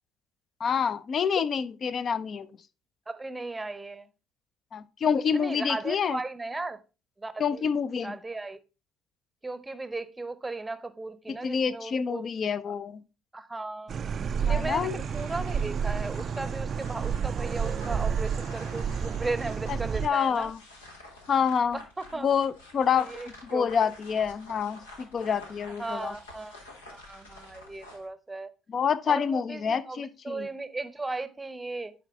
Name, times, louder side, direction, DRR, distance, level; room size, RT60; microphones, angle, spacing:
voice 1, 0.6-2.5 4.7-6.2 7.4-8.1 11.3-13.0 14.5-15.0 20.0-20.6 21.3-21.8 22.2-23.1 23.5-26.1 28.7-30.5, left 7 dB, 45° left, 0.5 m, -27 dB
voice 2, 3.1-4.1 5.3-6.8 7.2-7.7 8.0-8.6 9.4-12.3 12.7-12.8 13.3-13.9 14.4-20.5 21.7-22.3 22.9-23.9 25.8-26.6 26.9-28.5 29.1-31.9, right 2 dB, 15° right, 0.7 m, -36 dB
sound 1, 13.9-20.1, right 7 dB, 45° right, 0.3 m, -30 dB
sound 2, 14.5-28.1, left 2 dB, 85° left, 1.2 m, -49 dB
10.0 x 4.1 x 3.5 m
hypercardioid pair, 60°, 0 cm